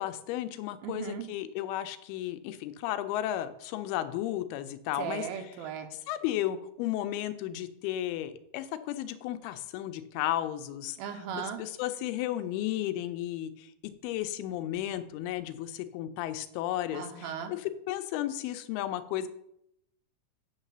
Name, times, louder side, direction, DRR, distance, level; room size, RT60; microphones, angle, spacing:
voice 1, 0.0-5.3 6.1-11.0 11.3-19.3, left 13 dB, 85° left, 11 dB, 2.5 m, -34 dB
voice 2, 0.8-1.3 5.0-5.9 11.0-11.6 16.9-17.5, right 8 dB, 80° right, 7 dB, 2.4 m, -37 dB
8.3 x 4.0 x 6.6 m, 0.77 s
omnidirectional pair, 4.4 m